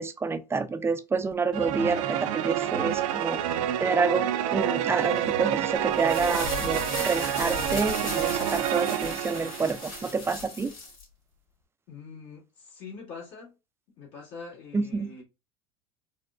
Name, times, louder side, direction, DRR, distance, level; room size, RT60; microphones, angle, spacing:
voice 1, 0.0-3.4 3.8-10.7 14.7-15.1, right 4 dB, 15° right, 0.4 m, -28 dB
sound 1, 1.5-10.1, right 11 dB, 75° right, 0.5 m, -28 dB
sound 2, 5.9-11.0, left 4 dB, 85° left, 2.0 m, -37 dB
voice 2, 11.9-13.5 14.0-15.2, left 5 dB, 70° left, 1.8 m, -44 dB
4.1 x 2.1 x 2.4 m
hypercardioid pair, 85°, 17 cm